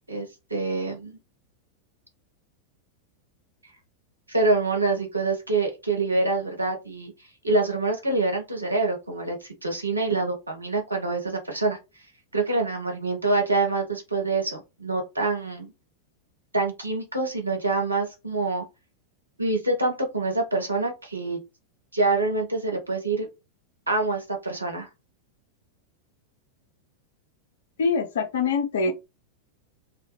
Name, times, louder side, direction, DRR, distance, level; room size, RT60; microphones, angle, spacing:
voice 1, 0.1-1.2 4.3-7.1 7.4-11.8 12.3-15.7 16.5-18.6 19.4-21.4 21.9-23.3 23.9-24.9, right 3 dB, 80° right, 0.8 m, -26 dB
voice 2, 27.8-28.9, left 4 dB, 60° left, 0.5 m, -24 dB
2.3 x 2.2 x 2.8 m
figure-of-eight pair, 90°, 0 cm